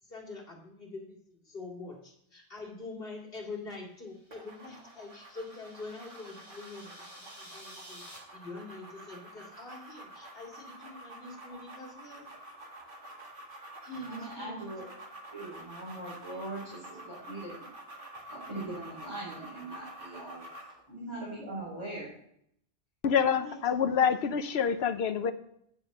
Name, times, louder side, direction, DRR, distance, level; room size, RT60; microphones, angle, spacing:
voice 1, 0.0-12.3 13.8-14.9 16.3-16.5 23.4-23.7, left 3 dB, 65° left, -1 dB, 2.6 m, -45 dB
sound 1, 4.0-8.2, equal, 25° left, 2.6 m, -53 dB
sound 2, 4.3-20.8, right 1 dB, 55° right, 2.0 m, -48 dB
voice 2, 13.9-14.8 15.3-17.7 18.3-20.4 20.9-22.1, right 2 dB, 25° right, -6 dB, 4.3 m, -41 dB
voice 3, 23.0-25.3, left 7 dB, 85° left, 11 dB, 1.0 m, -27 dB
9.2 x 6.7 x 6.6 m, 0.71 s
omnidirectional pair, 1.0 m